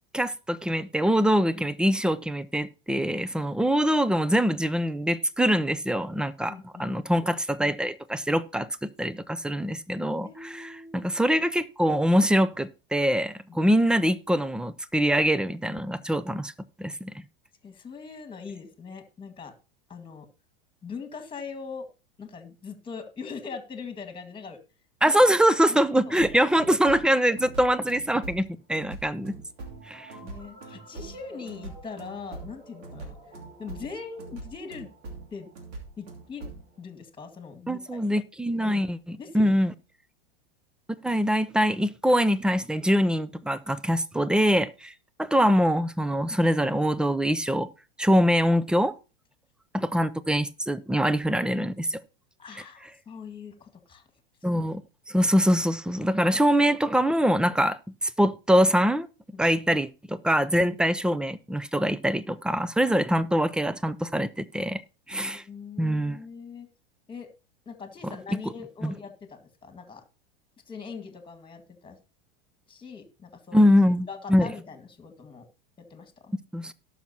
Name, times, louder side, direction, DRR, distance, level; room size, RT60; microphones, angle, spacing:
voice 1, 0.1-16.5 16.8-17.1 25.0-29.3 29.9-30.1 37.7-39.7 41.0-44.9 45.2-47.7 48.0-48.9 49.7-52.0 54.4-54.8 55.1-59.1 59.4-64.8 65.1-65.4 65.8-66.2 68.8-68.9 73.5-74.5 76.5-76.7, equal, 5° right, 0.4 m, -24 dB
voice 2, 6.5-6.9 10.2-11.2 17.6-19.5 19.9-20.3 20.8-21.9 22.2-24.6 25.0-25.2 25.6-26.2 27.5-27.6 30.2-33.2 33.6-34.9 35.3-35.5 36.0-36.5 36.8-38.1 38.6-38.9 39.2-39.6 52.4-54.0 54.5-54.6 59.3-59.4 65.1-66.7 67.1-67.3 67.7-70.0 70.7-72.0 72.7-73.7 74.1-75.5 75.8-76.3, left 5 dB, 15° left, 1.9 m, -41 dB
sound 1, 26.2-36.7, right 2 dB, 60° right, 2.8 m, -43 dB
18.0 x 6.0 x 2.8 m
hypercardioid pair, 105°, 29 cm